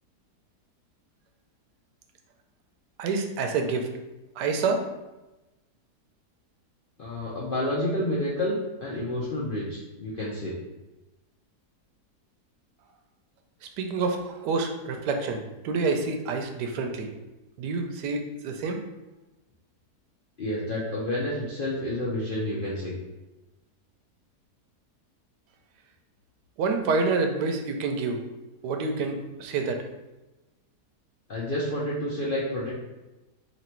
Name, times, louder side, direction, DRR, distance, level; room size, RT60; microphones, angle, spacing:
voice 1, 3.0-3.9 4.4-4.9 13.8-17.1 17.6-18.8 26.6-28.2 28.6-29.8, right 4 dB, 85° right, 4 dB, 1.2 m, -27 dB
voice 2, 7.0-8.5 8.8-10.6 20.4-22.9 31.3-32.7, left 1 dB, 65° left, -6 dB, 0.5 m, -29 dB
3.0 x 3.0 x 4.3 m, 1.0 s
omnidirectional pair, 1.7 m